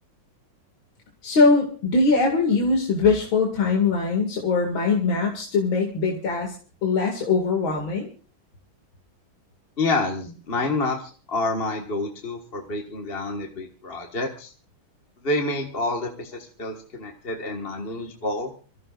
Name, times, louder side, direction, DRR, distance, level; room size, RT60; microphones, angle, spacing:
voice 1, 1.2-6.5 6.8-8.1, left 4 dB, 70° left, 0 dB, 3.0 m, -21 dB
voice 2, 9.8-14.5 15.2-18.5, left 2 dB, 30° left, 2 dB, 1.7 m, -28 dB
27.5 x 14.5 x 2.5 m, 0.38 s
omnidirectional pair, 2.3 m